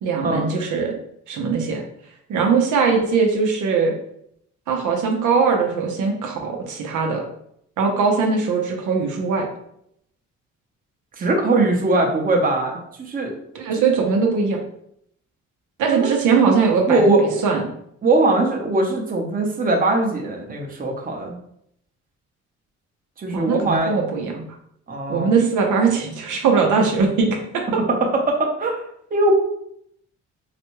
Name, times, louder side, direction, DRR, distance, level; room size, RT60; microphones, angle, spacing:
voice 1, 0.0-1.0 1.3-1.8 2.3-3.9 4.7-7.2 7.8-9.5 13.5-14.6 15.8-17.6 23.3-24.4 25.1-27.6, right 5 dB, 80° right, 1 dB, 0.7 m, -20 dB
voice 2, 11.2-13.3 15.9-16.1 16.9-17.4 18.0-21.4 23.2-23.9 24.9-25.3 28.0-28.8 29.1-29.3, right 2 dB, 30° right, 1 dB, 0.8 m, -21 dB
4.0 x 2.2 x 3.0 m, 0.72 s
cardioid pair, 90°, 30 cm